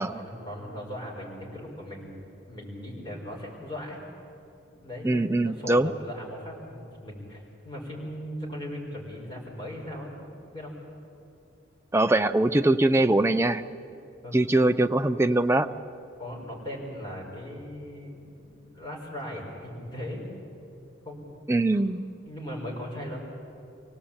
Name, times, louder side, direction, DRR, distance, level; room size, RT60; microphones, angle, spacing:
voice 1, 0.0-2.2 2.5-4.0 4.8-10.2 10.5-10.7 14.2-14.4 16.2-20.3 21.0-21.2 21.7-21.8 22.3-23.2, equal, 20° left, -3 dB, 5.2 m, -38 dB
voice 2, 5.0-5.9 11.9-13.6 14.3-15.7 21.5-22.1, right 2 dB, 15° right, 8 dB, 0.5 m, -22 dB
25.0 x 17.5 x 8.8 m, 2.7 s
head